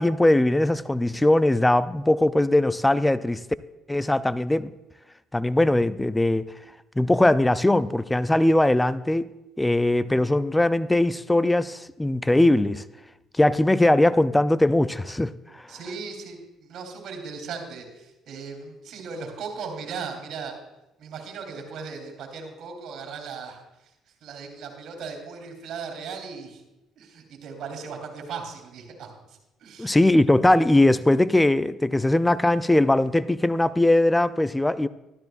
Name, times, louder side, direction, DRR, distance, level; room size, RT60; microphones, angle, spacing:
voice 1, 0.0-3.4 3.9-4.7 5.3-6.5 7.0-12.8 13.3-15.6 29.8-34.9, left 1 dB, 10° left, 0.4 m, -20 dB
voice 2, 15.7-20.6 21.0-23.9 24.2-26.6 26.9-30.0, right 5 dB, 65° right, 3.4 m, -37 dB
13.0 x 12.5 x 2.5 m
supercardioid pair, 70°, 0 cm